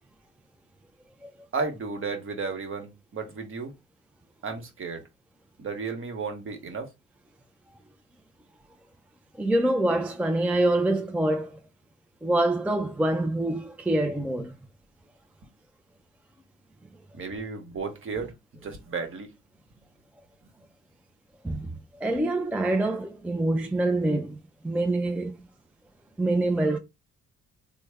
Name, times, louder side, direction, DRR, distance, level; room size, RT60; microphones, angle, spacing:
voice 1, 1.5-3.7 4.4-5.0 5.6-6.9 15.4-15.5 17.1-19.3, right 4 dB, 45° right, 1.1 m, -33 dB
voice 2, 9.4-11.6 12.2-14.5 21.4-21.7 22.0-24.4 24.6-25.4 26.2-26.8, right 1 dB, 5° right, 0.4 m, -25 dB
3.3 x 2.1 x 3.3 m
cardioid pair, 90°, 30 cm